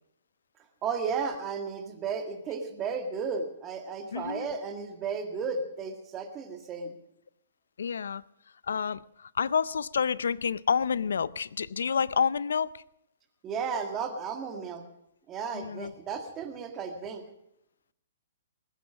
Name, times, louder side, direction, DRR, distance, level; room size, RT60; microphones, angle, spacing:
voice 1, 0.8-6.9 13.4-14.8 15.3-17.2, right 5 dB, 25° right, 2.0 m, -34 dB
voice 2, 4.1-4.5 7.8-8.2 8.7-9.0 9.4-12.7 15.5-15.9, left 6 dB, 80° left, 0.5 m, -28 dB
20.0 x 9.1 x 6.3 m
hypercardioid pair, 135°, 0 cm